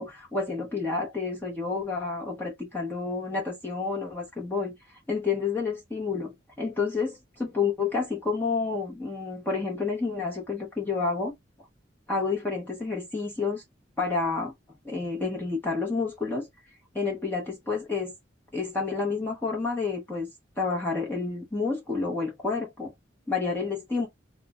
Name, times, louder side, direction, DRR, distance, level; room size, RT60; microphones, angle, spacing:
voice 1, 0.0-4.8 5.1-11.3 12.1-13.6 14.0-14.5 14.8-16.5 16.9-18.1 18.5-20.3 20.6-22.9 23.3-24.1, left 4 dB, 10° left, 0.8 m, -29 dB
2.3 x 2.1 x 3.4 m
head